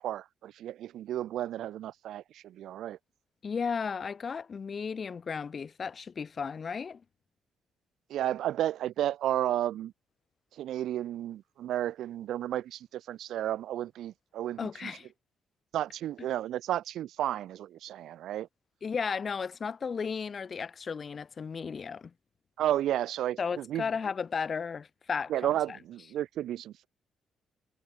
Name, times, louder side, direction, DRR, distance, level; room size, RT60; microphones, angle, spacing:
voice 1, 0.0-3.0 8.1-9.9 10.5-14.9 15.7-18.5 22.6-23.8 25.3-26.9, right 12 dB, 80° right, 0.9 m, -32 dB
voice 2, 3.4-7.0 14.6-15.1 18.8-22.1 23.4-25.5, left 6 dB, 40° left, 4.6 m, -34 dB
cardioid pair, 90°, 0 cm